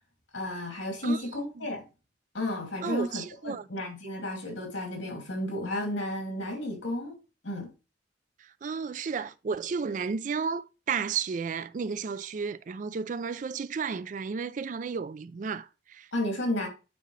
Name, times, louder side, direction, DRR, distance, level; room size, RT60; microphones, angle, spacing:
voice 1, 0.3-1.9 2.3-7.1 7.4-7.7 16.1-16.7, left 1 dB, 75° left, 2.4 m, -32 dB
voice 2, 1.0-1.7 2.8-3.7 8.4-16.1, right 5 dB, 40° right, 0.3 m, -33 dB
9.1 x 3.8 x 3.2 m
head